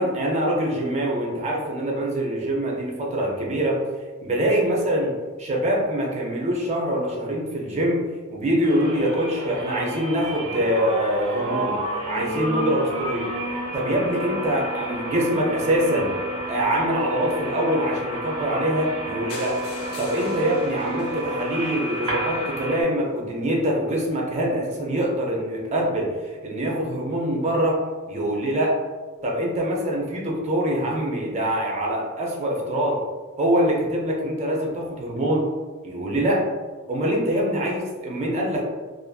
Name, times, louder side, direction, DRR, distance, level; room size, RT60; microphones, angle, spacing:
voice 1, 0.0-3.8 4.2-8.0 8.3-13.3 13.7-16.1 16.5-19.6 20.0-26.2 26.4-27.8 28.1-28.8 29.2-33.0 33.4-35.5 35.8-36.4 36.9-38.6, right 1 dB, 30° right, -1 dB, 0.4 m, -24 dB
sound 1, 8.6-22.8, right 1 dB, 70° right, 0.9 m, -30 dB
sound 2, 19.3-23.2 23.8-23.9 24.2-24.3 24.5-24.6 24.8-24.9, left 2 dB, 80° left, 0.5 m, -41 dB
2.5 x 2.4 x 2.2 m, 1.4 s
head